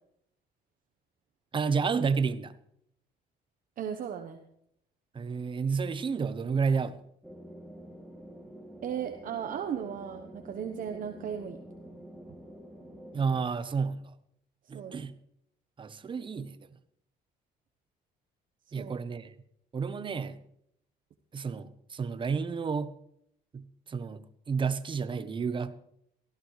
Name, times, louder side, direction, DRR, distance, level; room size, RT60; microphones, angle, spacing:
voice 1, 1.5-2.5 5.1-6.9 13.1-14.0 14.7-15.1 15.8-16.6 18.7-19.3 19.7-20.4 21.3-22.9 23.5-25.7, right 5 dB, 30° right, 13 dB, 0.9 m, -31 dB
voice 2, 3.8-4.4 8.8-11.6 14.7-15.0 18.7-19.0, right 8 dB, 55° right, 5 dB, 1.1 m, -36 dB
sound 1, 7.2-13.4, equal, 5° right, 2.7 m, -48 dB
18.5 x 14.5 x 3.3 m, 0.73 s
cardioid pair, 110°, 17 cm